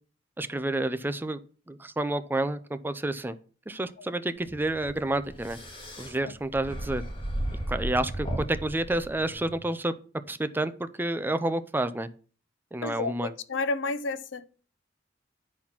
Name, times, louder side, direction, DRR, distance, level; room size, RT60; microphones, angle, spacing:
voice 1, 0.4-1.4 1.7-3.4 3.7-5.6 6.0-7.0 7.7-9.9 10.3-12.1 12.7-13.3, right 1 dB, 10° right, 0.4 m, -29 dB
sound 1, 4.4-9.6, right 1 dB, 30° left, 1.8 m, -35 dB
voice 2, 12.8-14.5, left 3 dB, 70° left, 0.6 m, -31 dB
10.0 x 4.2 x 5.8 m
head